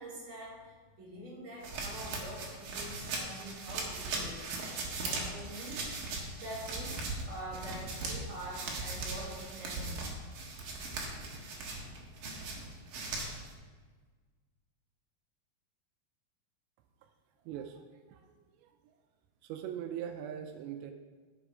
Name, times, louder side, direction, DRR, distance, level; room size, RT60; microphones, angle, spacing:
voice 1, 0.0-4.5 4.8-10.1, right 1 dB, 30° right, -7 dB, 3.7 m, -45 dB
sound 1, 1.6-13.5, right 3 dB, 60° right, 2.8 m, -39 dB
voice 2, 17.5-17.8 18.1-18.2 18.6-18.7 19.4-20.9, right 9 dB, 85° right, 5 dB, 2.9 m, -40 dB
13.5 x 5.8 x 4.9 m, 1.4 s
omnidirectional pair, 5.0 m